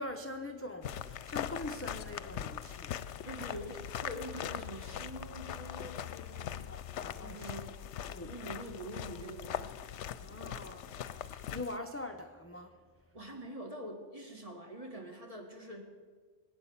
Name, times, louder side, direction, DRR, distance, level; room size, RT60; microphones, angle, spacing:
voice 1, 0.0-2.9 6.7-7.5 8.1-8.3 10.2-12.7, left 1 dB, 15° left, 6 dB, 0.7 m, -43 dB
sound 1, 0.8-11.8, left 10 dB, 75° left, 0.9 m, -41 dB
voice 2, 3.2-6.7 7.2-7.7 8.2-9.8 13.1-15.8, right 1 dB, 30° right, 2 dB, 2.3 m, -45 dB
20.5 x 9.3 x 7.2 m, 1.5 s
omnidirectional pair, 1.2 m